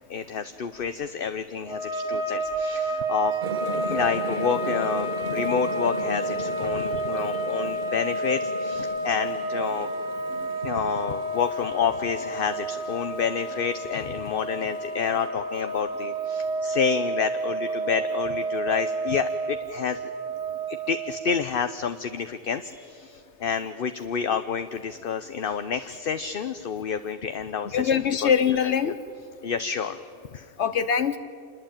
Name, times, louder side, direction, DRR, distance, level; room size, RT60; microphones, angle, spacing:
voice 1, 0.1-3.4 3.8-9.9 10.6-20.0 20.7-28.3 28.6-28.9 29.4-30.0 30.3-30.5, left 6 dB, 55° left, 9 dB, 1.0 m, -29 dB
sound 1, 1.6-21.3, right 2 dB, 80° right, 2.4 m, -30 dB
sound 2, 3.4-15.3, right 2 dB, 45° right, 1.5 m, -38 dB
voice 2, 27.7-29.0 30.6-31.2, left 7 dB, 75° left, 11 dB, 1.1 m, -23 dB
27.0 x 21.0 x 9.0 m, 2.3 s
omnidirectional pair, 1.2 m